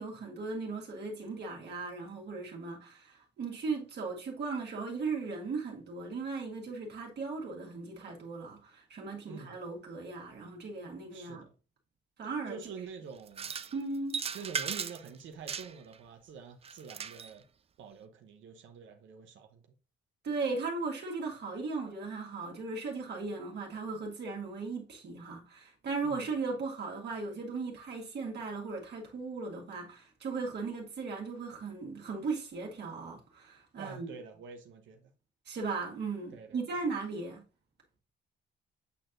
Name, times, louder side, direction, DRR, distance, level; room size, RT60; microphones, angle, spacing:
voice 1, 0.0-11.4 12.2-12.6 13.7-14.2 20.2-34.1 35.5-37.4, right 4 dB, 60° right, 1.9 m, -37 dB
voice 2, 11.1-11.5 12.5-13.5 14.3-17.4 17.8-19.6 26.0-26.3 33.8-35.1 36.3-36.6, right 6 dB, 75° right, 0.9 m, -46 dB
sound 1, 13.3-13.7 14.1-15.1 15.5-16.0 16.6-17.3, right 6 dB, 30° right, 0.4 m, -37 dB
8.4 x 4.3 x 2.6 m
cardioid pair, 90°, 20 cm